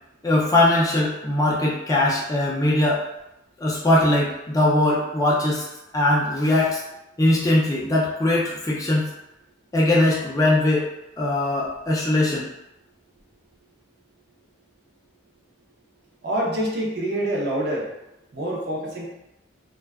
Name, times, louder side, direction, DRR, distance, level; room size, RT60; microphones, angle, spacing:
voice 1, 0.2-3.0 3.6-5.6 5.9-6.8 7.2-9.1 9.7-10.9 11.2-12.5, left 1 dB, 15° left, -5 dB, 0.3 m, -20 dB
voice 2, 16.2-17.9 18.3-19.1, right 1 dB, 55° right, -2 dB, 0.5 m, -26 dB
2.5 x 2.2 x 2.3 m, 0.88 s
head